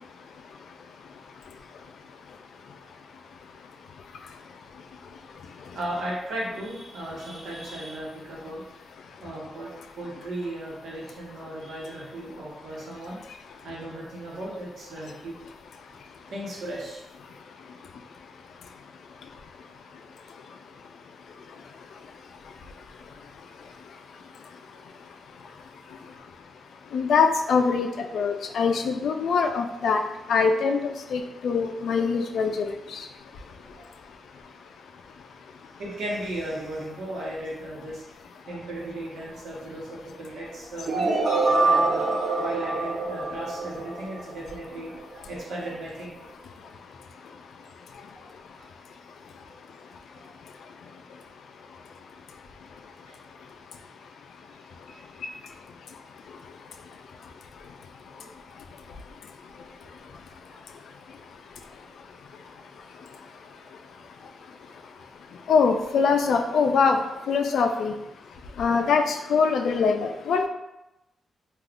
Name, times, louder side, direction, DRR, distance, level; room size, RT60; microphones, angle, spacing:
voice 1, 5.7-8.6 9.2-13.2 13.6-15.3 16.3-17.0 33.7-33.8 35.8-38.0 38.5-41.1 41.6-46.1 48.1-48.3 48.6-48.7 49.8-49.9 50.1-50.2 53.1-53.2 54.9-55.1 58.1-58.3 60.5-60.6 61.0-61.1 61.8-61.9 63.2-63.3 63.6-63.7 64.3-64.4, right 1 dB, 85° right, -4 dB, 1.0 m, -36 dB
voice 2, 26.9-27.9 28.1-30.0 30.3-33.0 65.5-67.0 67.3-67.9 68.6-70.5, left 5 dB, 75° left, 6 dB, 0.3 m, -23 dB
sound 1, 40.9-44.8, right 3 dB, 45° right, 0.6 m, -25 dB
2.4 x 2.3 x 3.5 m, 0.92 s
wide cardioid pair, 140°, 0 cm